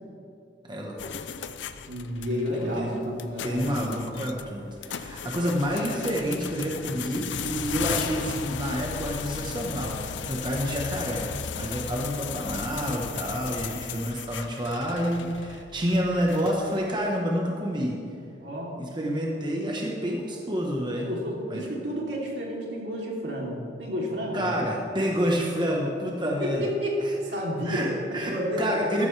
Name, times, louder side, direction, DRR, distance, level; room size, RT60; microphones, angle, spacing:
voice 1, 0.6-1.4 2.6-3.0 3.4-18.0 18.8-21.1 21.5-21.7 24.3-26.6 27.0-27.1 27.6-29.1, equal, 25° right, -1 dB, 1.2 m, -29 dB
sound 1, 1.0-16.9, left 6 dB, 90° left, 0.6 m, -36 dB
voice 2, 1.9-3.9 18.4-18.8 21.0-24.5 26.6-27.0 27.2-27.8 28.2-29.1, equal, 75° right, -3 dB, 3.2 m, -31 dB
14.0 x 14.0 x 3.4 m, 2.6 s
head